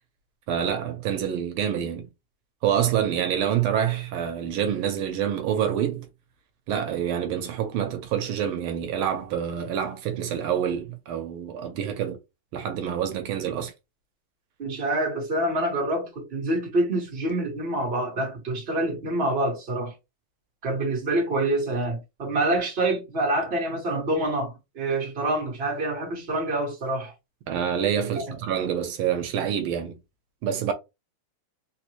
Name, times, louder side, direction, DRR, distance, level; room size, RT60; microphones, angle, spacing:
voice 1, 0.5-2.1 2.6-6.1 6.7-12.2 12.5-13.7 27.5-30.0 30.4-30.7, right 9 dB, 85° right, 1.6 m, -27 dB
voice 2, 14.6-19.9 20.6-27.1 28.1-28.2, right 1 dB, 30° right, 1.4 m, -26 dB
3.9 x 2.5 x 2.9 m
omnidirectional pair, 2.4 m